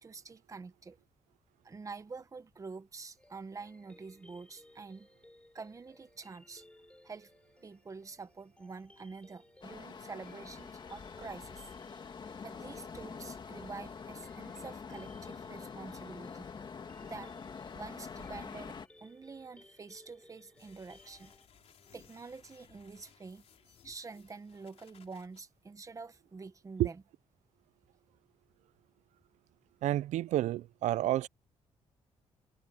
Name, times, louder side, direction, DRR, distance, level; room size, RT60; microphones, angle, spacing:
voice 1, 0.0-1.0 1.6-5.1 5.5-6.6 7.0-7.3 7.6-11.7 12.4-16.5 17.0-17.3 17.7-21.3 21.9-23.4 23.8-27.0, right 4 dB, 30° right, 1.3 m, -47 dB
sound 1, 3.2-21.5, left 1 dB, 10° left, 3.8 m, -61 dB
sound 2, 9.6-18.9, left 5 dB, 40° left, 2.6 m, -45 dB
sound 3, 20.5-25.4, left 8 dB, 60° left, 3.3 m, -62 dB
voice 2, 29.8-31.3, right 14 dB, 80° right, 0.4 m, -30 dB
cardioid pair, 110°, 12 cm